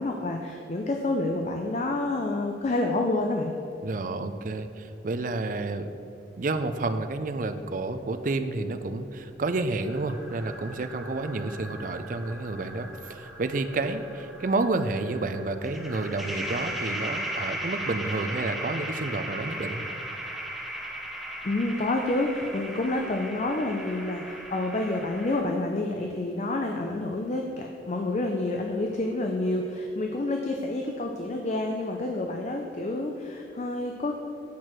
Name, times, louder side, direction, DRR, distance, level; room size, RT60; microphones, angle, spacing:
voice 1, 0.0-3.5 21.4-34.1, left 2 dB, 40° left, 2 dB, 0.5 m, -28 dB
voice 2, 3.8-5.9 6.4-19.9, right 3 dB, 45° right, 9 dB, 0.4 m, -30 dB
sound 1, 9.8-25.4, equal, ahead, 0.7 m, -37 dB
8.3 x 4.5 x 6.0 m, 2.8 s
head